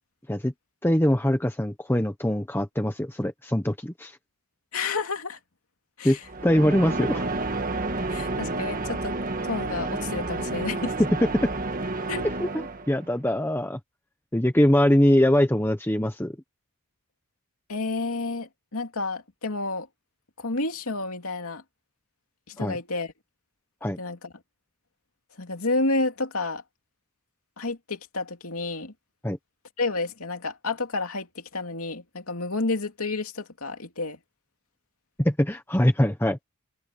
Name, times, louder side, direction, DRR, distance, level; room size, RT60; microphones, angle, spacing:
voice 1, 0.8-4.2 6.0-6.2 6.4-7.2 11.4-11.5 12.4-12.5 12.9-13.8 14.3-16.3 22.6-22.8 23.8-24.0 29.2-29.4 35.2-36.4, left 1 dB, 10° left, 1.1 m, -22 dB
voice 2, 4.7-5.4 6.0-6.3 8.1-9.2 9.4-10.9 12.1-12.3 17.7-19.9 20.4-21.6 22.5-23.1 24.0-24.3 25.4-26.6 27.6-28.9 29.8-34.2, left 3 dB, 75° left, 2.8 m, -30 dB
sound 1, 6.2-13.1, right 2 dB, 40° right, 1.6 m, -30 dB
head